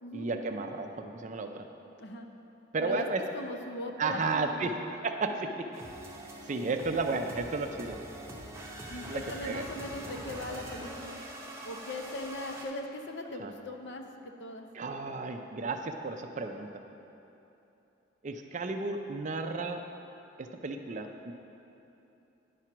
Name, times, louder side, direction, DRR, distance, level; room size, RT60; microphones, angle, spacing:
voice 1, 0.1-1.7 2.7-3.2 4.0-5.5 6.5-8.0 9.1-9.7 13.4-13.5 14.7-16.8 18.2-19.8 20.4-21.3, right 3 dB, 35° right, 5 dB, 0.4 m, -33 dB
voice 2, 3.3-4.6 5.3-5.5 8.9-11.2 11.6-14.7, left 2 dB, 60° left, 4 dB, 0.6 m, -40 dB
sound 1, 5.7-12.7, right 1 dB, 15° right, 0.8 m, -43 dB
9.9 x 4.4 x 5.9 m, 2.9 s
head